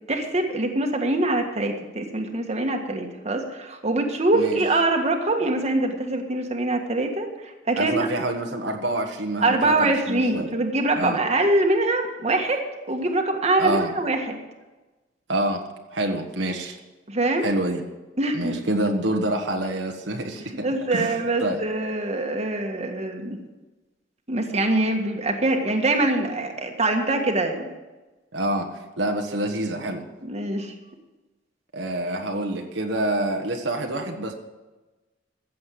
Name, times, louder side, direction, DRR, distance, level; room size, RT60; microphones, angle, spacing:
voice 1, 0.1-8.1 9.4-14.4 17.1-17.5 18.2-18.6 20.6-23.4 24.3-27.6 30.3-30.7, right 2 dB, 35° right, 3 dB, 1.6 m, -24 dB
voice 2, 7.8-10.5 10.9-11.2 13.6-13.9 15.3-15.6 15.9-16.8 17.4-17.8 18.3-21.6 28.3-30.1 31.7-34.3, right 1 dB, 70° right, 2 dB, 1.4 m, -27 dB
15.0 x 7.7 x 7.8 m, 1.1 s
head